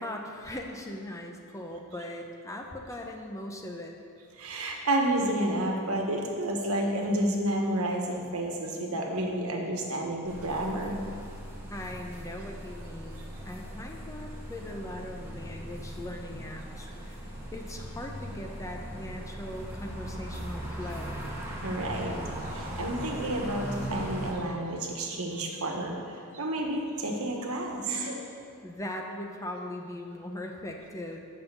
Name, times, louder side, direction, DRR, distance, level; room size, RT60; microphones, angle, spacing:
voice 1, 0.0-3.9 11.7-21.2 28.6-31.2, left 1 dB, 15° left, 2 dB, 0.7 m, -40 dB
voice 2, 4.4-11.0 21.6-22.2 22.5-26.0 26.3-28.2, right 1 dB, 75° right, 1 dB, 1.3 m, -30 dB
sound 1, 10.3-24.3, right 1 dB, 10° right, 1.4 m, -39 dB
8.4 x 5.5 x 6.8 m, 2.5 s
head